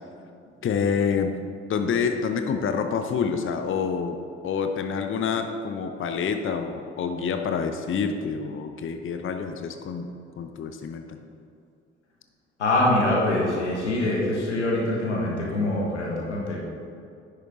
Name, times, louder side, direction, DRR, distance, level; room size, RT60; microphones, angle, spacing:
voice 1, 0.6-1.4 1.7-4.2 4.4-10.1 10.4-11.2, left 6 dB, 35° left, 6 dB, 0.7 m, -27 dB
voice 2, 12.6-16.6, left 1 dB, 90° left, -3 dB, 1.3 m, -24 dB
10.0 x 6.6 x 3.8 m, 2.4 s
figure-of-eight pair, 45°, 34 cm